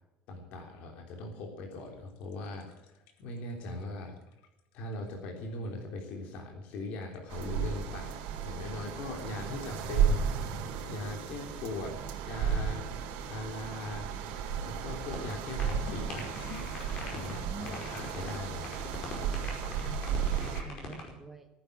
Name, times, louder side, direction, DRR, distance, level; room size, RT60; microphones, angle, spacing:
voice 1, 0.3-4.2 4.7-10.3 10.9-12.0 12.2-12.8 13.2-14.1 14.6-16.3 17.1-18.7, left 2 dB, 55° left, 1 dB, 3.3 m, -40 dB
sound 1, 1.8-5.4 6.7-8.7 9.4-10.2 15.6-19.1, left 7 dB, 70° left, 2.5 m, -51 dB
sound 2, 7.3-20.6, right 7 dB, 70° right, 4.2 m, -34 dB
sound 3, 15.1-15.3 15.6-15.7 16.1-17.4 17.6-18.4 18.6-21.1, left 4 dB, 35° left, 5.0 m, -41 dB
voice 2, 17.3-18.0 19.7-21.5, right 5 dB, 5° right, 5 dB, 1.7 m, -46 dB
17.5 x 10.0 x 7.8 m, 0.95 s
cardioid pair, 180°, 3 cm